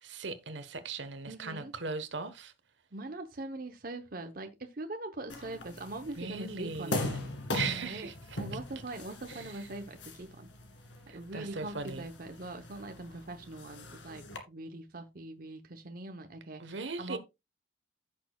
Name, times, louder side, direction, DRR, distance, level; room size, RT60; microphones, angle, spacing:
voice 1, 0.0-2.5 6.2-7.1 7.5-8.4 9.3-9.7 11.1-12.0 16.6-17.2, right 4 dB, 75° right, 1.2 m, -38 dB
voice 2, 1.3-1.7 2.9-7.2 7.6-8.1 8.4-10.5 11.1-17.2, right 2 dB, 50° right, 0.9 m, -42 dB
sound 1, 5.3-14.4, left 2 dB, 80° left, 2.1 m, -40 dB
15.5 x 6.3 x 2.3 m
head